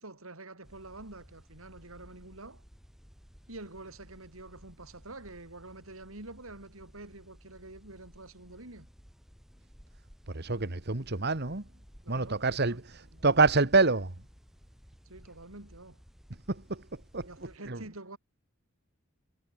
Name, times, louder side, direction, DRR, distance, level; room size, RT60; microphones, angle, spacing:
voice 1, 0.0-2.6 3.5-8.9 12.0-12.8 15.1-16.0 17.2-18.2, right 2 dB, 80° right, 4.3 m, -47 dB
sound 1, 0.6-17.6, equal, ahead, 3.9 m, -56 dB
voice 2, 10.3-11.6 12.1-14.1 16.5-17.3 17.7-17.8, right 3 dB, 50° right, 1.7 m, -27 dB
head